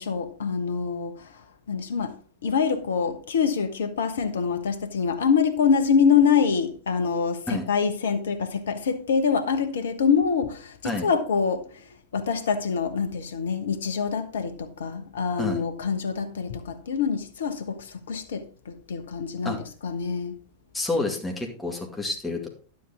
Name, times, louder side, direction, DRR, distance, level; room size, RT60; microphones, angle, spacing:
voice 1, 0.0-1.3 1.7-2.1 2.4-11.8 12.1-20.3, left 6 dB, 65° left, 1.2 m, -25 dB
voice 2, 20.7-22.5, left 2 dB, 10° left, 2.2 m, -29 dB
11.0 x 7.7 x 3.6 m
figure-of-eight pair, 90°, 0 cm